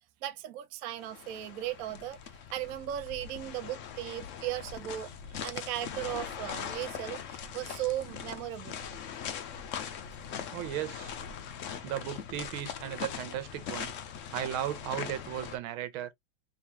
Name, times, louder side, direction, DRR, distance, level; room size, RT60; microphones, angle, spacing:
voice 1, 0.2-2.2 2.5-5.1 5.4-8.8, right 13 dB, 70° right, 0.8 m, -37 dB
sound 1, 1.0-15.6, left 8 dB, 80° left, 0.6 m, -41 dB
voice 2, 10.5-11.2 11.8-13.9 14.3-16.1, right 11 dB, 85° right, 1.6 m, -36 dB
3.6 x 3.4 x 2.8 m
omnidirectional pair, 2.2 m